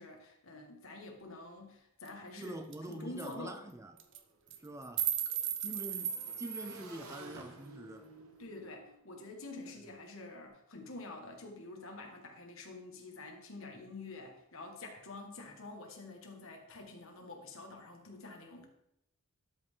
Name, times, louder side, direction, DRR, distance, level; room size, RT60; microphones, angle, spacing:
voice 1, 0.0-2.6 2.9-3.6 8.4-18.7, left 2 dB, 65° left, 1.7 m, -47 dB
sound 1, 2.1-2.2 2.4-2.5 2.7-2.9 3.2-3.3 4.0-4.2 4.5-6.8, right 10 dB, 55° right, 0.7 m, -36 dB
voice 2, 2.3-4.0 4.6-5.1 5.6-8.1, right 1 dB, 15° right, 0.4 m, -45 dB
Motorcycle / Engine, 2.9-3.0 3.2-10.4, right 2 dB, 75° right, 1.3 m, -55 dB
12.0 x 5.5 x 3.7 m
head